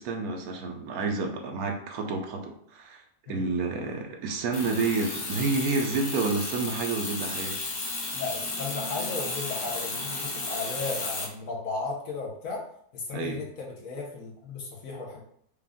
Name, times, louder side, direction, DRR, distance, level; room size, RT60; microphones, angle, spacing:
voice 1, 0.0-3.0 3.3-7.6 13.1-13.4, right 3 dB, 75° right, 3 dB, 1.1 m, -29 dB
sound 1, 4.5-11.3, left 3 dB, 85° left, 1.6 m, -33 dB
voice 2, 8.1-12.6 12.9-15.2, left 4 dB, 60° left, -1 dB, 1.3 m, -35 dB
5.0 x 2.4 x 3.5 m, 0.67 s
omnidirectional pair, 1.7 m